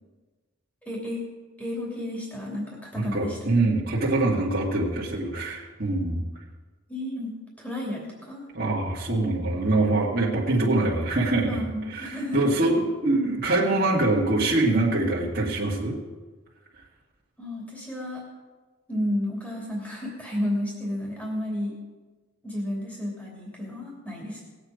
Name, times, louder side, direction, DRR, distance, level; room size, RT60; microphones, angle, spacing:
voice 1, 0.9-1.2 1.6-3.4 6.9-8.5 11.5-12.5 17.4-18.2 18.9-21.7 22.4-24.4, left 1 dB, 5° left, -3 dB, 2.9 m, -32 dB
voice 2, 2.9-6.2 8.5-16.0, right 2 dB, 45° right, -5 dB, 2.0 m, -24 dB
19.5 x 8.1 x 5.1 m, 1.3 s
head